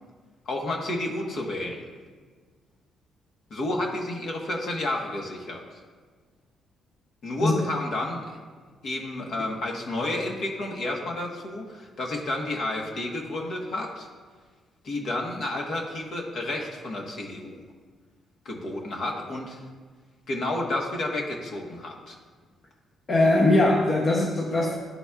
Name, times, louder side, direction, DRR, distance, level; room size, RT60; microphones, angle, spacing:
voice 1, 0.4-1.8 3.5-5.6 7.2-8.4 8.8-14.1 14.8-17.6 18.4-19.6 20.3-22.2, left 1 dB, 65° left, 0 dB, 1.1 m, -31 dB
voice 2, 23.1-24.8, left 2 dB, 40° left, -1 dB, 0.7 m, -21 dB
11.0 x 4.1 x 2.3 m, 1.5 s
cardioid pair, 90°, 0 cm